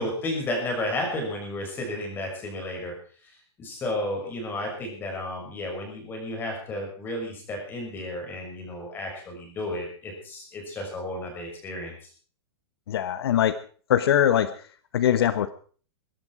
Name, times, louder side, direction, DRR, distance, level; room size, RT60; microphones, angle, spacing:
voice 1, 0.0-2.9 3.6-11.9, left 1 dB, 15° left, 2 dB, 6.4 m, -32 dB
voice 2, 12.9-13.6 13.9-14.6 14.9-15.5, left 10 dB, 65° left, 13 dB, 1.1 m, -22 dB
23.0 x 12.0 x 4.9 m, 0.43 s
supercardioid pair, 170°, 14 cm